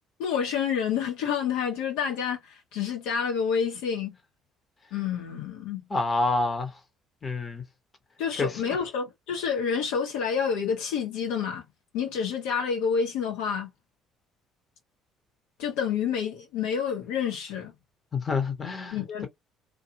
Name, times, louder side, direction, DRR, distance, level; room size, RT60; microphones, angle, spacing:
voice 1, 0.2-4.1 4.9-5.8 8.2-11.6 11.9-13.7 15.6-17.7 18.9-19.3, left 7 dB, 70° left, 1.2 m, -28 dB
voice 2, 5.9-6.7 7.2-7.6 8.4-8.8 18.1-19.0, left 3 dB, 30° left, 1.2 m, -27 dB
2.6 x 2.5 x 2.7 m
hypercardioid pair, 55°, 0 cm